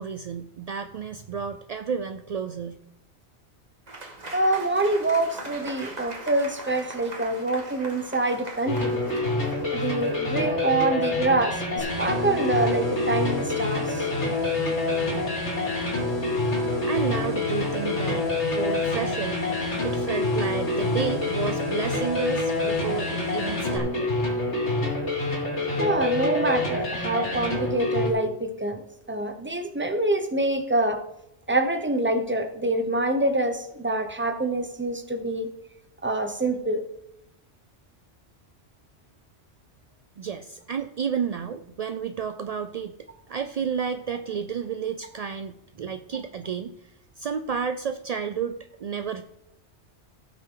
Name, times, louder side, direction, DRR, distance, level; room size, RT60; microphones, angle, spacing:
voice 1, 0.0-2.8 16.9-19.4 19.8-24.1 40.2-42.9 43.3-46.7 47.2-48.5 48.8-49.2, right 7 dB, 60° right, 8 dB, 0.4 m, -31 dB
Applause / Crowd, 3.9-10.7, right 2 dB, 40° right, 1.6 m, -41 dB
voice 2, 4.3-9.0 9.7-14.1 25.8-28.8 29.1-31.0 31.5-35.5 36.0-36.8, right 2 dB, 10° right, 6 dB, 0.9 m, -26 dB
sound 1, 8.7-28.1, left 2 dB, 90° left, 2.9 m, -27 dB
sound 2, 11.8-23.8, left 5 dB, 65° left, 2.0 m, -34 dB
16.5 x 6.1 x 3.8 m, 0.81 s
omnidirectional pair, 1.2 m